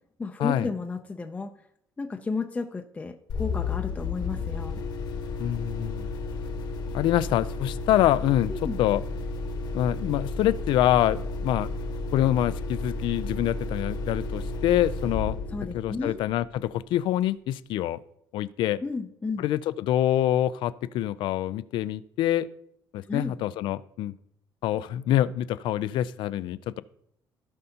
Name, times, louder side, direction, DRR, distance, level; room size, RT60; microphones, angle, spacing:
voice 1, 0.2-1.5 2.0-4.8 8.5-8.8 15.5-16.2 18.8-19.4 23.1-23.3, left 4 dB, 15° left, 4 dB, 0.5 m, -32 dB
sound 1, 3.3-16.8, left 3 dB, 60° left, 1.1 m, -33 dB
voice 2, 5.4-6.1 6.9-9.0 9.7-11.7 12.1-15.4 15.7-18.0 18.3-18.8 19.4-22.5 22.9-24.1 24.6-26.8, left 12 dB, 75° left, 16 dB, 0.4 m, -25 dB
16.0 x 5.4 x 2.9 m, 0.72 s
cardioid pair, 135°, 8 cm